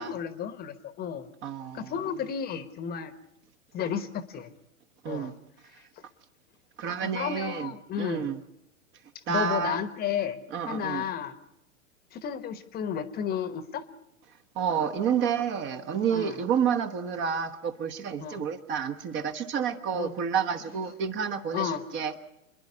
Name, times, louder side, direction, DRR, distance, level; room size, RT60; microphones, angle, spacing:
voice 1, 0.0-1.3 1.7-3.1 3.7-4.5 5.1-5.3 7.0-8.3 9.3-10.4 10.7-11.4 12.1-13.8 16.1-16.4 18.2-18.4 19.9-20.1 21.5-21.8, left 8 dB, 25° left, 12 dB, 1.1 m, -32 dB
voice 2, 1.4-1.9 5.0-5.3 6.8-7.7 8.0-8.4 9.3-9.8 10.5-11.0 14.5-22.1, right 7 dB, 30° right, 8 dB, 1.2 m, -29 dB
27.0 x 11.0 x 9.6 m, 0.86 s
hypercardioid pair, 115°, 40 cm